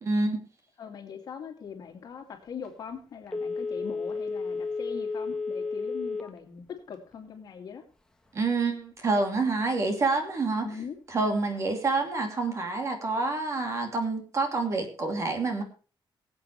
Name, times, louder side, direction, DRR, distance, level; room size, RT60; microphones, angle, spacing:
voice 1, 0.0-0.4 8.3-10.7 11.1-15.6, right 3 dB, 35° right, 5 dB, 2.7 m, -27 dB
voice 2, 0.8-7.8 10.6-11.0, left 6 dB, 50° left, 3 dB, 2.5 m, -41 dB
Telephone, 3.3-6.4 6.8-6.9, left 4 dB, 5° left, 1.2 m, -32 dB
22.5 x 8.1 x 3.2 m, 0.37 s
wide cardioid pair, 180°, 9 cm